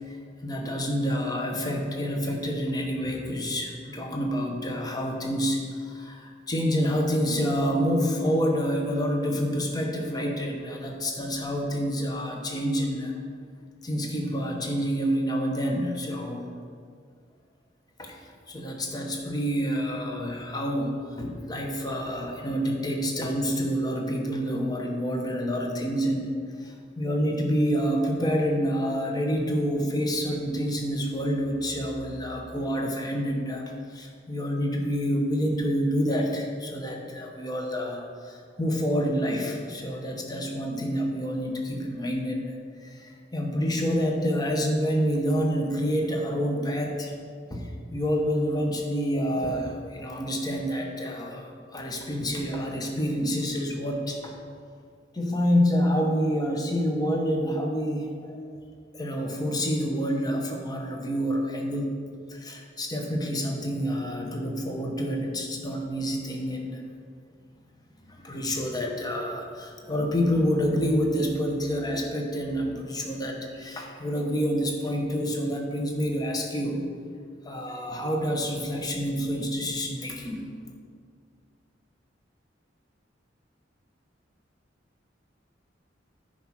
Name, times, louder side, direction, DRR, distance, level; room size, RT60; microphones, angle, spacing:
voice 1, 0.1-13.2 13.8-16.4 18.0-18.2 18.5-26.3 26.6-42.6 42.8-47.1 47.5-54.4 55.1-58.4 58.9-61.9 62.3-66.8 68.1-76.8 77.4-80.6, equal, 20° left, 1 dB, 1.0 m, -28 dB
10.0 x 4.8 x 5.9 m, 2.1 s
head